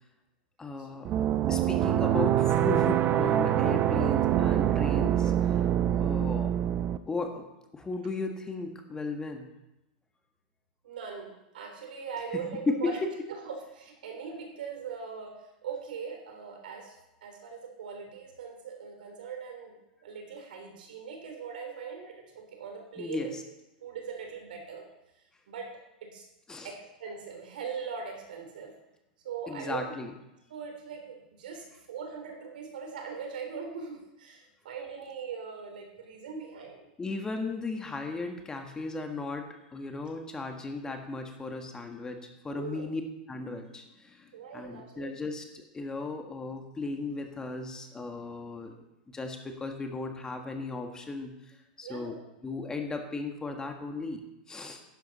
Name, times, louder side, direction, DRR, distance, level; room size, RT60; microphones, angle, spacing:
voice 1, 0.6-1.1 1.5-5.6 6.0-6.5 7.1-7.5 7.7-9.5 12.7-13.1 23.0-23.3 26.5-26.7 29.5-30.1 37.0-39.5 39.7-42.2 42.4-43.0 43.3-48.7 49.1-52.2 52.4-54.2 54.5-54.8, left 3 dB, 15° left, 4 dB, 1.5 m, -35 dB
sound 1, 1.0-7.0, right 11 dB, 35° right, 0.6 m, -25 dB
voice 2, 10.8-13.0 13.4-17.0 17.2-19.7 20.0-23.3 23.8-24.8 25.5-25.7 26.0-26.2 26.6-28.7 29.2-29.9 30.5-36.9 42.5-42.9 44.3-45.1 51.8-52.2, right 6 dB, 80° right, 2 dB, 3.6 m, -40 dB
11.5 x 10.5 x 4.2 m, 0.93 s
hypercardioid pair, 125°, 5 cm